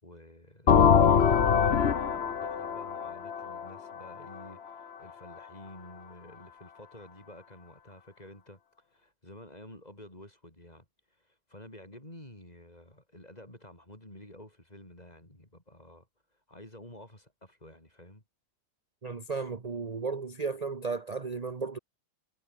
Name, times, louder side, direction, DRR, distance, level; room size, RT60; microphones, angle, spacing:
voice 1, 0.0-8.6 8.9-10.9 11.2-16.1 16.5-18.2, left 1 dB, 15° left, 6.4 m, -50 dB
sound 1, 0.7-4.4, left 7 dB, 40° left, 0.9 m, -23 dB
voice 2, 19.0-21.8, right 4 dB, 30° right, 0.7 m, -34 dB
omnidirectional pair, 2.3 m